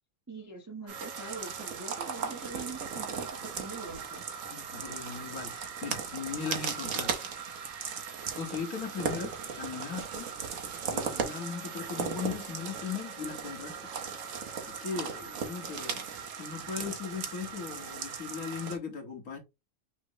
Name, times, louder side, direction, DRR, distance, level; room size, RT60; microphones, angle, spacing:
voice 1, 0.3-3.3 3.5-4.2, right 3 dB, 20° right, 0.5 m, -43 dB
sound 1, 0.9-18.8, right 6 dB, 65° right, 1.2 m, -37 dB
voice 2, 4.5-7.1 8.3-10.3 10.9-13.7 14.7-16.1 16.4-19.4, left 6 dB, 85° left, 1.8 m, -38 dB
5.9 x 2.0 x 3.9 m
omnidirectional pair, 1.5 m